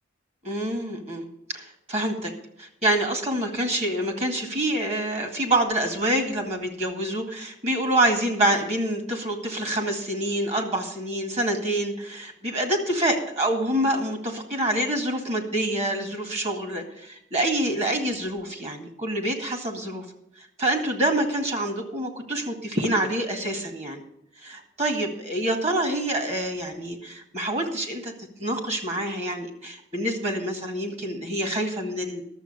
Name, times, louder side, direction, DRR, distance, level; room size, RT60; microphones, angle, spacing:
voice 1, 0.4-2.3 2.6-20.1 20.4-24.0 24.4-28.1 28.4-32.2, right 1 dB, 35° right, 4 dB, 2.0 m, -26 dB
12.0 x 7.3 x 6.8 m, 0.79 s
head